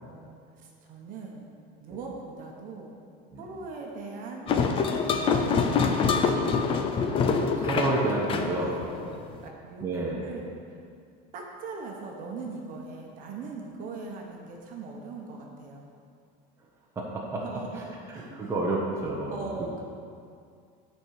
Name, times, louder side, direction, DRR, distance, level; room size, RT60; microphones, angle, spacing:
voice 1, 0.0-1.5 1.8-3.0 3.4-4.5 5.2-5.5 8.6-9.9 10.2-10.6 11.3-15.9 17.4-18.6 19.3-19.8, right 4 dB, 40° right, 0 dB, 1.2 m, -40 dB
sound 1, 4.5-9.4, left 5 dB, 25° left, 0.5 m, -25 dB
voice 2, 7.6-8.8 9.8-10.2 17.0-17.4 17.7-17.8 18.1-19.5, right 2 dB, 15° right, -4 dB, 1.0 m, -29 dB
8.7 x 4.6 x 6.5 m, 2.3 s
cardioid pair, 165°, 20 cm